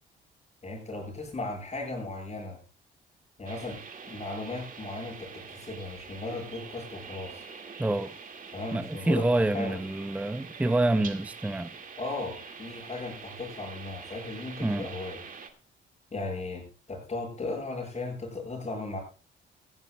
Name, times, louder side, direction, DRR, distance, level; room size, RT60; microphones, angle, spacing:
voice 1, 0.6-2.6 3.4-3.8 4.1-7.4 8.5-9.3 9.5-9.8 12.0-15.2 16.1-19.0, left 2 dB, 30° left, 6.6 m, -36 dB
sound 1, 3.4-15.5, right 5 dB, 45° right, 2.0 m, -45 dB
voice 2, 7.8-8.1 8.7-11.7 14.6-14.9, right 2 dB, 5° right, 0.5 m, -27 dB
18.5 x 15.0 x 2.2 m
cardioid pair, 90°, 20 cm